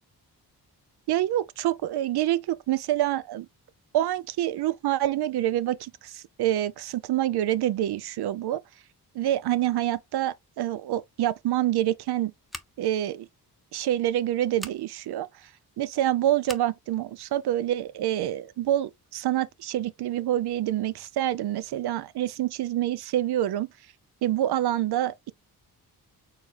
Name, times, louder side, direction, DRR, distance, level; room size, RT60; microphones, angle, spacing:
voice 1, 1.1-3.5 3.9-8.6 9.1-12.3 12.8-13.3 13.7-15.5 15.8-23.7 24.2-25.3, right 13 dB, 75° right, 0.6 m, -27 dB
Scissors, 12.5-13.0 14.5-14.8 16.4-16.7, equal, ahead, 0.7 m, -41 dB
4.5 x 3.6 x 3.2 m
cardioid pair, 85°, 39 cm